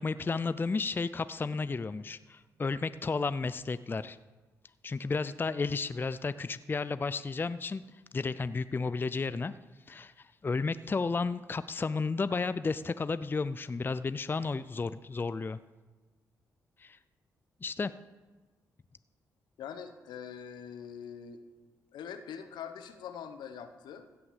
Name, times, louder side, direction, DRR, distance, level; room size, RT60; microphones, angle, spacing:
voice 1, 0.0-4.2 4.8-7.8 8.1-9.5 9.9-15.6 16.8-17.0 17.6-17.9, left 4 dB, 30° left, 15 dB, 0.4 m, -32 dB
voice 2, 19.6-21.4 21.9-24.1, left 8 dB, 80° left, 9 dB, 1.1 m, -43 dB
16.0 x 5.9 x 7.4 m, 1.3 s
supercardioid pair, 50°, 7 cm